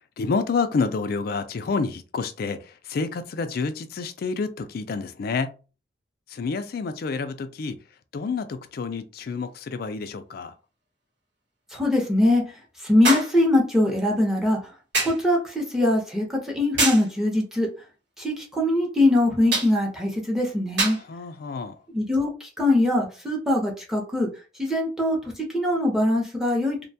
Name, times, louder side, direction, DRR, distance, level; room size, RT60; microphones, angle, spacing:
voice 1, 0.2-5.5 6.3-7.8 8.1-10.5 21.0-21.8, left 4 dB, 55° left, 0.4 m, -29 dB
sound 1, 9.3-9.4 13.0-13.4 14.9-15.3 16.8-17.1 19.5-19.8 20.8-21.1 22.1-22.2, right 2 dB, 85° right, 1.3 m, -25 dB
voice 2, 11.7-12.4 12.8-14.6 15.0-17.7 18.2-21.0 21.9-24.3 24.6-26.8, left 1 dB, 5° right, 0.7 m, -22 dB
2.7 x 2.2 x 2.7 m
head